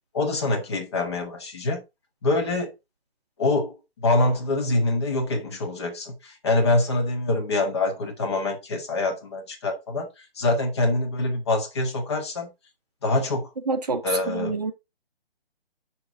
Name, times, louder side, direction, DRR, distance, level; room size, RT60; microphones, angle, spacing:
voice 1, 0.1-1.8 2.2-2.7 3.4-12.5 13.0-13.5 14.0-14.6, left 2 dB, 25° left, 1.9 m, -25 dB
voice 2, 13.7-14.7, right 3 dB, 40° right, 1.0 m, -27 dB
7.0 x 6.7 x 3.9 m
hypercardioid pair, 170°, 31 cm